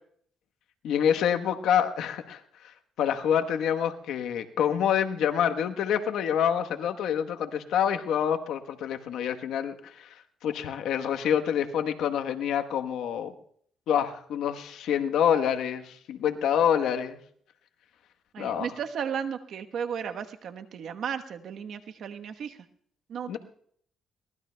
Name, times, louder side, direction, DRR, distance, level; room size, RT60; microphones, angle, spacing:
voice 1, 0.8-13.3 13.9-17.2 18.4-18.7 23.3-23.4, left 8 dB, 80° left, 7 dB, 1.1 m, -27 dB
voice 2, 18.3-22.6 23.1-23.4, right 7 dB, 70° right, 7 dB, 1.0 m, -34 dB
22.5 x 18.5 x 2.2 m, 0.63 s
cardioid pair, 90°, 0 cm